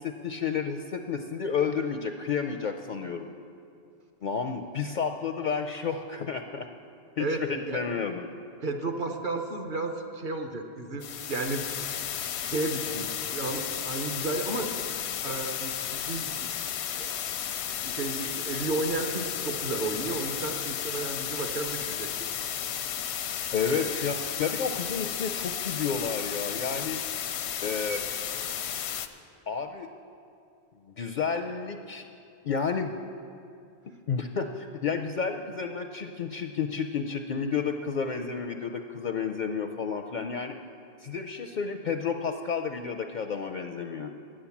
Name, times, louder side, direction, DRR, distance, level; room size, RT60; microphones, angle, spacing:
voice 1, 0.0-3.3 4.2-6.7 7.2-8.3 23.5-27.0 27.6-28.0 29.5-29.9 30.9-32.0 32.4-32.9 34.1-40.6 41.0-44.1, left 6 dB, 60° left, 6 dB, 0.5 m, -31 dB
voice 2, 7.2-7.8 8.6-11.6 12.4-14.8 15.2-16.7 17.0-17.1 17.8-22.1 23.5-23.8, right 2 dB, 50° right, 4 dB, 1.0 m, -33 dB
sound 1, 11.0-29.1, left 9 dB, 85° left, 0.9 m, -33 dB
10.0 x 8.7 x 7.1 m, 2.5 s
omnidirectional pair, 1.1 m